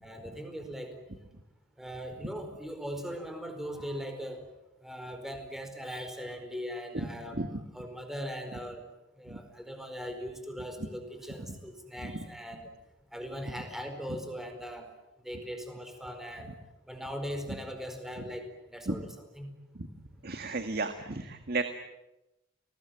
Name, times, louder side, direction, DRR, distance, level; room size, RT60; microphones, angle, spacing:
voice 1, 0.0-1.0 1.8-4.4 4.8-7.4 7.7-8.8 9.2-12.7 13.1-14.9 15.2-16.6 16.9-18.4 18.7-19.5, equal, ahead, 6 dB, 4.7 m, -40 dB
voice 2, 20.2-21.6, right 3 dB, 55° right, 8 dB, 1.8 m, -33 dB
30.0 x 20.5 x 9.1 m, 0.95 s
head